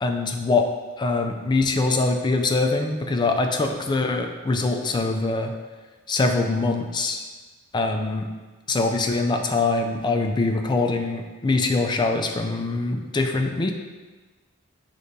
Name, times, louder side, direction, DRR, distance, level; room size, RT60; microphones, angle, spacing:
voice 1, 0.0-0.7 1.0-5.5 6.1-7.2 7.7-8.3 8.7-13.7, left 3 dB, 20° left, 4 dB, 0.3 m, -23 dB
5.2 x 3.4 x 2.6 m, 1.3 s
head